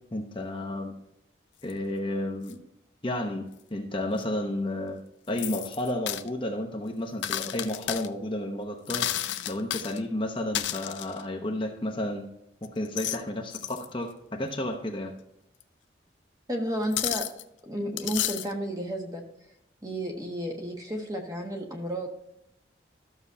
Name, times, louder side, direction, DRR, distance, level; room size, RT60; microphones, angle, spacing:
voice 1, 0.1-0.9 1.6-2.6 3.0-5.0 5.3-9.1 9.5-12.3 12.6-15.1, left 1 dB, 25° left, 2 dB, 0.9 m, -32 dB
sound 1, 1.7-1.8 2.5-2.6 4.2-4.3 5.4-6.3 7.2-8.1 8.9-10.0 10.5-11.2 12.6-13.2 13.5-13.9 15.6-15.7 16.9-17.4 18.0-18.5, left 12 dB, 80° left, 0.5 m, -32 dB
voice 2, 16.5-17.3 17.6-19.2 19.8-22.1, equal, 20° right, 1 dB, 1.4 m, -32 dB
13.0 x 6.9 x 2.7 m, 0.80 s
head